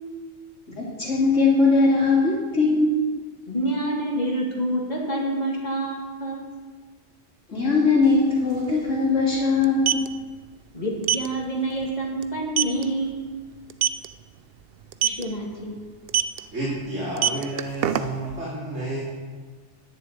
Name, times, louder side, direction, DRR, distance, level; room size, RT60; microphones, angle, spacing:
voice 1, 0.7-3.0 7.5-10.0, left 3 dB, 80° left, -9 dB, 3.1 m, -20 dB
voice 2, 3.5-6.4 10.7-13.3 15.0-15.8, right 1 dB, 35° left, -1 dB, 2.4 m, -27 dB
sound 1, 8.0-8.1 8.4-8.6 9.6-10.1 11.0-11.3 11.7-11.9 12.2-12.3 12.6-12.8 13.7-14.1 14.9-15.2 16.1-16.4 17.0-18.3, right 11 dB, 60° right, 0.7 m, -22 dB
voice 3, 16.5-19.0, right 1 dB, 90° right, -8 dB, 3.6 m, -30 dB
10.5 x 7.0 x 8.7 m, 1.4 s
omnidirectional pair, 1.2 m